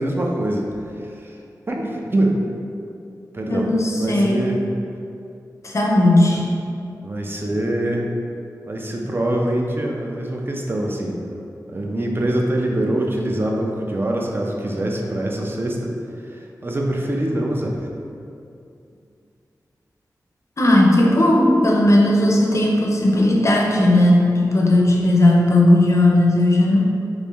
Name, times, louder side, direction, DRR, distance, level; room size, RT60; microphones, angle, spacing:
voice 1, 0.0-1.4 1.7-2.4 3.3-3.7 4.0-4.6 6.3-6.4 7.0-8.1 8.6-11.4 11.7-17.9, right 1 dB, 35° right, 0 dB, 0.5 m, -24 dB
voice 2, 3.5-4.5 5.6-6.4 20.6-26.8, left 1 dB, 45° left, -1 dB, 0.5 m, -16 dB
3.2 x 2.6 x 3.4 m, 2.5 s
wide cardioid pair, 65°, 7 cm